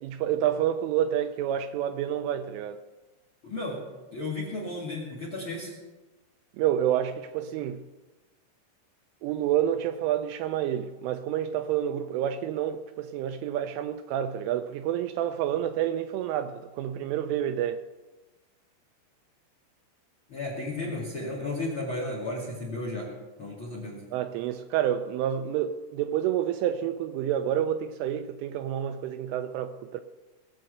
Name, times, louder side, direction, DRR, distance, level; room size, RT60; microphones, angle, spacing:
voice 1, 0.0-2.8 6.6-7.8 9.2-17.8 24.1-30.0, right 10 dB, 80° right, 9 dB, 2.9 m, -28 dB
voice 2, 3.4-3.8 4.1-5.7 20.3-23.1 23.4-24.0, left 2 dB, 40° left, -3 dB, 1.8 m, -33 dB
20.0 x 7.8 x 6.5 m, 1.1 s
omnidirectional pair, 6.0 m